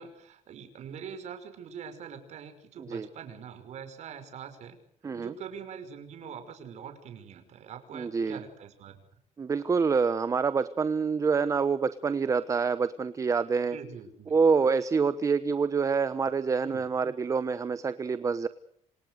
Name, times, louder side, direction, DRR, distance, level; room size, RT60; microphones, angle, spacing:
voice 1, 0.0-9.0 13.7-14.3 16.6-16.9, right 7 dB, 65° right, 7 dB, 5.9 m, -44 dB
voice 2, 7.9-8.4 9.4-13.8 14.3-18.5, right 5 dB, 25° right, 13 dB, 1.0 m, -26 dB
27.5 x 27.0 x 6.6 m, 0.69 s
cardioid pair, 160°, 13 cm